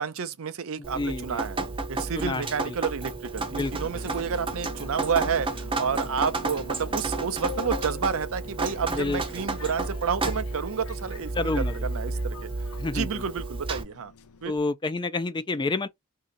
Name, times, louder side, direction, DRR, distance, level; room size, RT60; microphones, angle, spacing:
voice 1, 0.0-1.6 1.9-11.5 11.8-12.5 12.9-14.1 14.4-14.5, right 6 dB, 65° right, 0.6 m, -30 dB
voice 2, 0.8-1.5 2.2-2.7 3.6-4.0 9.0-9.4 11.3-11.9 12.8-13.2 14.4-15.9, left 3 dB, 20° left, 0.4 m, -30 dB
Drip, 0.8-13.8, right 3 dB, 25° right, 0.7 m, -32 dB
Subway metro underground, 3.8-14.6, left 6 dB, 75° left, 0.6 m, -45 dB
3.0 x 2.8 x 3.8 m
head